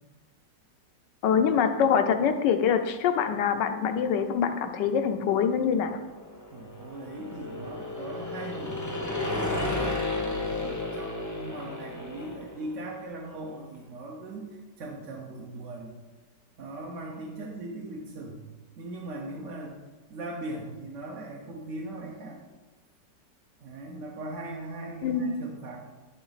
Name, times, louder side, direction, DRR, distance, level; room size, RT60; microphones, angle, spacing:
voice 1, 1.2-5.9 25.0-25.4, left 7 dB, 80° left, 7 dB, 1.2 m, -24 dB
sound 1, 5.9-12.8, left 2 dB, 15° left, 0.6 m, -33 dB
voice 2, 6.5-8.8 9.3-15.9 16.6-18.4 18.8-19.8 20.1-22.4 23.6-25.8, right 2 dB, 55° right, -1 dB, 0.9 m, -39 dB
11.0 x 3.9 x 4.0 m, 1.2 s
omnidirectional pair, 1.9 m